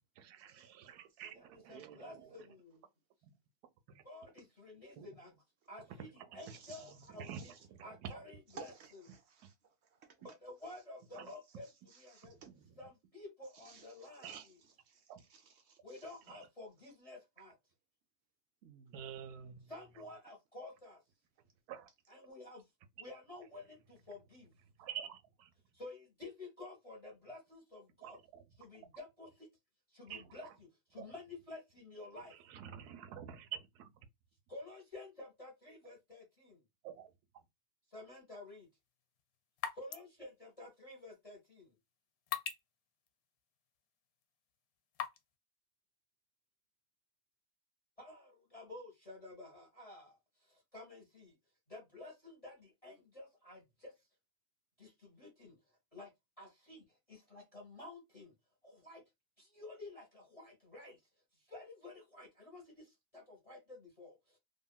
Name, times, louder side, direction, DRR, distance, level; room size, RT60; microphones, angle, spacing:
voice 1, 0.2-2.5 3.2-3.3 3.9-4.0 5.0-5.4 5.8-8.3 9.4-9.5 10.2-10.3 11.1-11.3 12.2-12.7 14.2-14.5 15.1-15.2 16.3-16.4 18.9-20.0 21.7-21.9 24.6-25.5 28.0-28.9 30.1-30.6 31.0-31.1 32.3-34.1 36.8-37.4, right 8 dB, 90° right, 1.1 m, -49 dB
voice 2, 1.7-2.8 4.0-5.3 5.7-6.1 6.3-7.3 7.8-8.7 10.2-11.7 12.0-12.3 12.8-14.3 15.8-17.5 19.7-21.0 22.1-22.6 23.0-24.5 25.7-28.2 28.6-29.5 29.9-30.5 30.9-32.3 34.5-36.6 37.9-38.7 39.7-41.7 48.0-51.3 51.7-53.9 54.8-55.6 55.9-56.1 56.4-58.3 58.6-59.0 59.4-61.0 61.5-64.4, left 2 dB, 25° left, 0.9 m, -51 dB
voice 3, 6.4-7.0 7.3-7.5 8.6-9.5 9.8-10.2 11.9-12.5 13.5-14.5 14.9-16.2 18.6-18.9, right 5 dB, 70° right, 0.6 m, -57 dB
sound 1, 38.6-45.4, left 8 dB, 75° left, 1.0 m, -47 dB
2.8 x 2.6 x 2.2 m
omnidirectional pair, 1.6 m